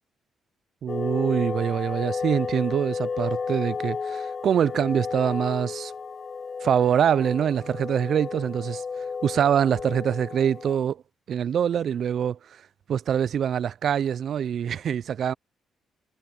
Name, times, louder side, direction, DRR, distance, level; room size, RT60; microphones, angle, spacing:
voice 1, 0.8-5.9 6.6-8.8 9.2-11.0 11.3-12.4 12.9-15.3, right 8 dB, 65° right, 0.4 m, -24 dB
sound 1, 0.9-10.8, left 5 dB, 40° left, 1.2 m, -32 dB
cardioid pair, 80°, 0 cm